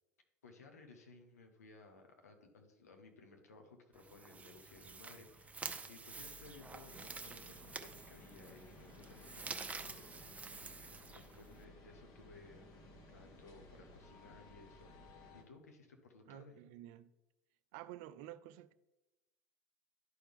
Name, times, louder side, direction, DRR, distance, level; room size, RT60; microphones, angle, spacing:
voice 1, 0.4-10.2 10.5-16.6, left 3 dB, 85° left, 1.1 m, -59 dB
sound 1, 3.9-11.6, right 4 dB, 15° right, 0.7 m, -49 dB
sound 2, 6.1-15.4, left 1 dB, 50° left, 1.5 m, -58 dB
voice 2, 16.3-17.1 17.7-18.7, right 13 dB, 60° right, 0.4 m, -51 dB
11.5 x 4.4 x 3.5 m
hypercardioid pair, 80°, 8 cm